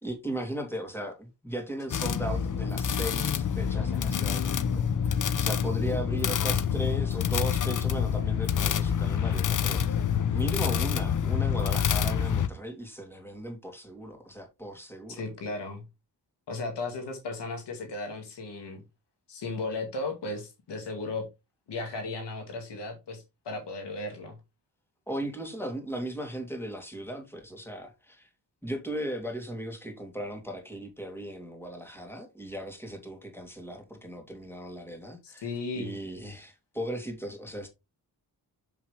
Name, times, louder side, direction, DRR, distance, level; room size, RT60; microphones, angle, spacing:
voice 1, 0.0-15.2 25.1-28.3 28.6-37.7, right 1 dB, 5° left, 3.0 m, -37 dB
sound 1, 1.9-12.5, left 8 dB, 50° left, 0.7 m, -27 dB
voice 2, 15.1-15.8 16.5-18.8 19.3-21.2 21.7-24.4 35.2-35.9, left 3 dB, 85° left, 2.1 m, -35 dB
7.2 x 5.9 x 3.3 m
cardioid pair, 65°, 40 cm